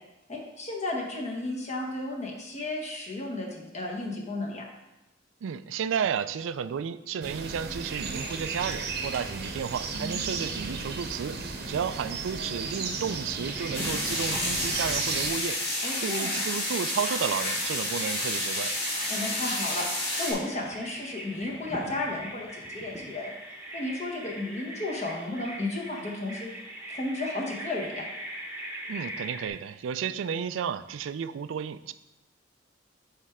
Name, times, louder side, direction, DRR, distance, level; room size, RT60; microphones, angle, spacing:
voice 1, 0.3-4.6 15.8-16.4 19.1-23.3 23.7-26.5 26.9-28.0, left 2 dB, 40° left, -1 dB, 1.4 m, -33 dB
voice 2, 5.4-18.7 28.9-31.9, right 7 dB, 80° right, 14 dB, 0.3 m, -32 dB
sound 1, 7.2-15.3, right 4 dB, 55° right, 0.8 m, -34 dB
Bird vocalization bird call bird song, 13.4-29.5, right 1 dB, 10° right, 1.1 m, -41 dB
sound 2, 13.7-20.3, left 1 dB, 55° left, 2.3 m, -30 dB
9.5 x 3.3 x 4.8 m, 0.99 s
head